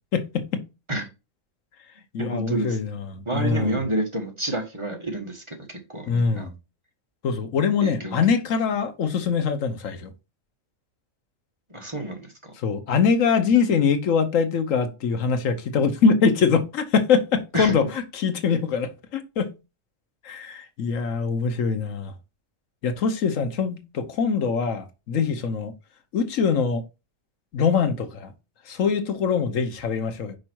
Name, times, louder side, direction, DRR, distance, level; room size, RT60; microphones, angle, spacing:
voice 1, 0.1-0.6 2.1-3.8 6.1-6.5 7.2-10.1 12.6-19.5 20.2-22.1 22.8-25.7 26.1-26.8 27.5-28.3 28.7-30.4, left 6 dB, 80° left, 1.3 m, -23 dB
voice 2, 2.2-2.8 3.2-6.5 7.8-8.2 11.7-12.5 17.5-17.8, right 1 dB, 25° right, 1.4 m, -29 dB
5.4 x 4.9 x 4.5 m
omnidirectional pair, 1.4 m